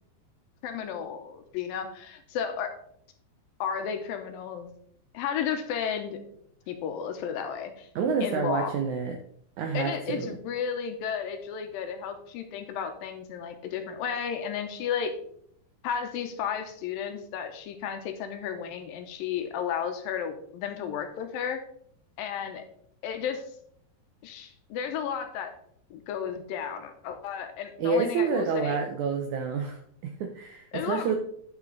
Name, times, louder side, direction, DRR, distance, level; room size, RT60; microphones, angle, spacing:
voice 1, 0.6-2.8 3.6-4.7 5.1-6.2 6.7-7.9 8.2-8.7 9.7-15.1 15.8-21.6 22.2-22.6 23.0-23.4 24.2-25.5 25.9-28.8 30.7-31.2, left 7 dB, 80° left, 7 dB, 2.5 m, -33 dB
voice 2, 8.0-9.2 9.6-10.4 27.8-31.2, right 5 dB, 80° right, 5 dB, 1.7 m, -28 dB
9.2 x 5.8 x 3.9 m, 0.66 s
omnidirectional pair, 4.2 m